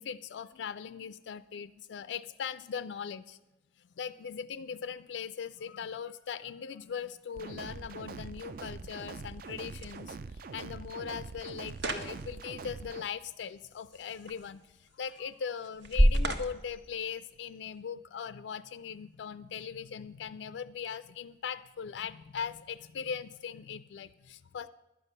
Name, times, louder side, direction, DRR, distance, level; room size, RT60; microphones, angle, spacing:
voice 1, 0.0-3.4 4.0-24.7, left 7 dB, 70° left, 13 dB, 0.3 m, -40 dB
sound 1, 6.9-17.8, equal, 70° right, 1.1 m, -34 dB
sound 2, 7.4-13.0, right 4 dB, 50° right, 0.4 m, -44 dB
11.5 x 9.1 x 6.6 m, 1.0 s
head